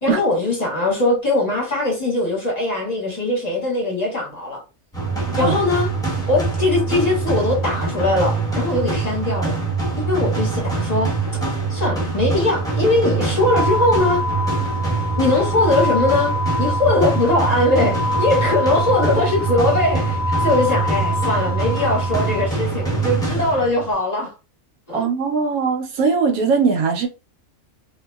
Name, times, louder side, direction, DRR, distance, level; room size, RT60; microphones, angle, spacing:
voice 1, 0.0-4.6 5.4-5.9 6.2-9.6 10.0-11.1 11.7-14.2 15.2-16.3 16.6-24.3 24.9-25.0, left 2 dB, 30° left, 1.0 m, -20 dB
sound 1, 4.9-23.9, right 4 dB, 5° left, 0.9 m, -23 dB
sound 2, 13.4-22.4, left 3 dB, 60° left, 0.9 m, -26 dB
voice 2, 24.9-27.1, right 5 dB, 85° right, 1.1 m, -20 dB
2.9 x 2.5 x 2.2 m
omnidirectional pair, 1.5 m